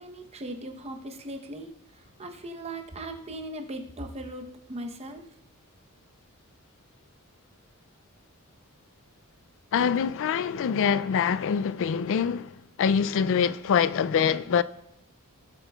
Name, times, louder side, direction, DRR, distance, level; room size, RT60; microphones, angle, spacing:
voice 1, 0.0-5.2, right 1 dB, 30° right, 0.9 m, -39 dB
voice 2, 9.7-14.6, left 7 dB, 60° left, 0.4 m, -25 dB
17.5 x 7.6 x 2.4 m
head